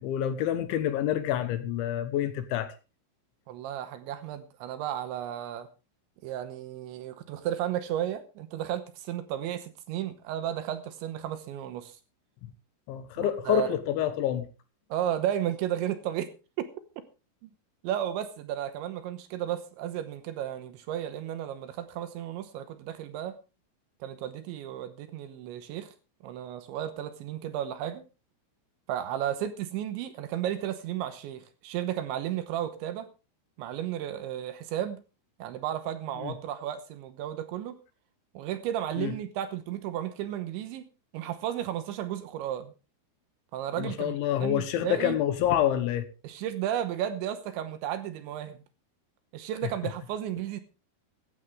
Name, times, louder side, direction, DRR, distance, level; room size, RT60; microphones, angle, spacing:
voice 1, 0.0-2.7 12.9-14.4 36.2-36.3 39.0-39.1 43.8-46.0, left 11 dB, 75° left, 3.2 m, -27 dB
voice 2, 3.5-5.7 6.2-12.0 13.2-13.7 14.9-16.3 17.4-17.5 17.8-23.3 24.0-25.9 26.2-28.0 28.9-33.1 33.6-35.0 35.4-37.8 38.3-40.8 41.1-42.7 43.5-45.2 46.2-48.6 49.3-50.6, right 11 dB, 75° right, 3.0 m, -33 dB
15.5 x 13.0 x 3.5 m
omnidirectional pair, 5.9 m